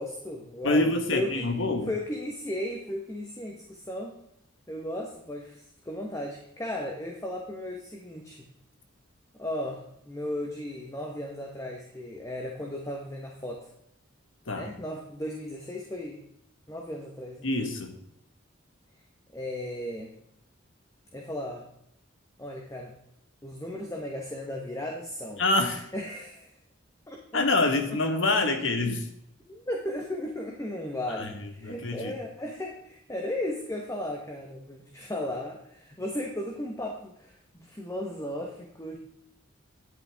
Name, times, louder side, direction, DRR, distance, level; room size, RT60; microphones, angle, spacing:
voice 1, 0.0-1.4 1.9-4.2 4.7-8.5 9.4-13.7 14.5-16.2 16.7-17.5 19.3-20.1 21.1-21.7 22.4-22.9 23.4-25.4 25.9-26.5 27.1-27.5 27.9-28.0 29.4-39.0, left 1 dB, 15° left, 1 dB, 1.1 m, -35 dB
voice 2, 0.6-1.9 14.5-14.7 17.4-18.0 25.4-25.9 27.3-29.0 31.2-32.1, left 2 dB, 70° left, 6 dB, 1.5 m, -26 dB
10.5 x 8.5 x 3.5 m, 0.75 s
head